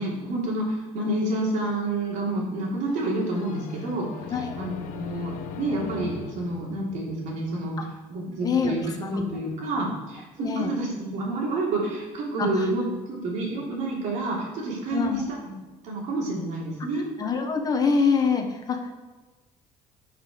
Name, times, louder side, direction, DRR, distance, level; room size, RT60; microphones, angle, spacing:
voice 1, 0.0-4.1 4.4-15.5 15.8-17.1, right 2 dB, 65° right, -2 dB, 3.2 m, -29 dB
sound 1, 2.8-7.6, left 7 dB, 70° left, 0.9 m, -39 dB
voice 2, 8.4-8.7 9.0-9.2 10.4-10.7 12.4-12.5 14.9-15.2 17.2-18.9, left 5 dB, 25° left, 4 dB, 1.0 m, -24 dB
12.0 x 5.9 x 5.0 m, 1.3 s
cardioid pair, 160°, 14 cm